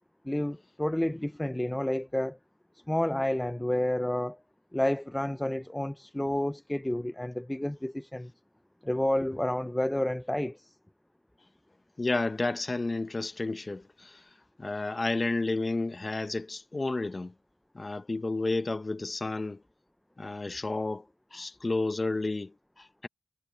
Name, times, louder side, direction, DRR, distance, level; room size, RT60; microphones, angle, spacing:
voice 1, 0.2-2.4 2.9-4.4 4.7-8.3 8.8-10.7, left 1 dB, 10° left, 0.7 m, -30 dB
voice 2, 12.0-14.2 14.6-17.3 17.7-19.6 20.2-21.0 21.3-23.1, left 2 dB, 40° left, 0.9 m, -31 dB
cardioid pair, 45°, 0 cm